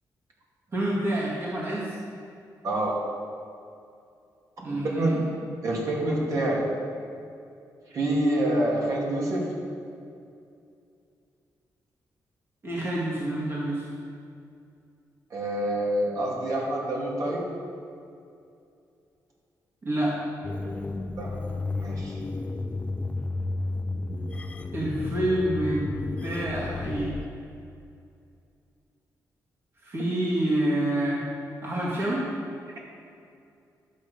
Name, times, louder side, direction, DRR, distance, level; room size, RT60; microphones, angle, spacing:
voice 1, 0.7-1.9 4.6-5.3 12.6-13.9 19.8-20.2 24.7-25.8 26.2-27.2 29.8-31.2 31.6-32.3, right 1 dB, 35° right, -6 dB, 2.1 m, -27 dB
voice 2, 2.6-3.0 4.7-5.1 5.6-6.7 7.9-9.5 15.3-17.5 21.2-21.3 21.8-22.2, right 1 dB, 55° right, -4 dB, 2.5 m, -27 dB
sound 1, 20.4-27.3, left 3 dB, 20° left, 0.5 m, -32 dB
13.0 x 6.6 x 5.2 m, 2.5 s
wide cardioid pair, 145°, 7 cm